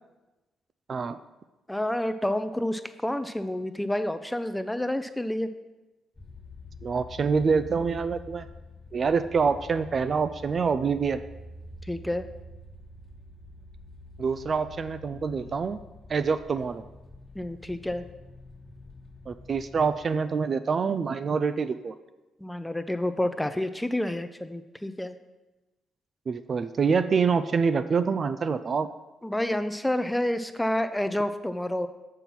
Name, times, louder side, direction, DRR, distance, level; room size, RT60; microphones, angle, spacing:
voice 1, 1.7-5.5 11.9-12.3 17.4-18.0 22.4-25.2 29.2-31.9, left 1 dB, 5° left, 10 dB, 0.5 m, -29 dB
sound 1, 6.2-20.0, left 2 dB, 25° left, 1.2 m, -46 dB
voice 2, 6.8-8.5 8.9-11.2 14.2-15.8 16.1-16.8 19.3-22.0 26.3-28.9, right 5 dB, 45° right, 12 dB, 0.4 m, -26 dB
6.9 x 5.5 x 5.9 m, 1.1 s
cardioid pair, 90°, 0 cm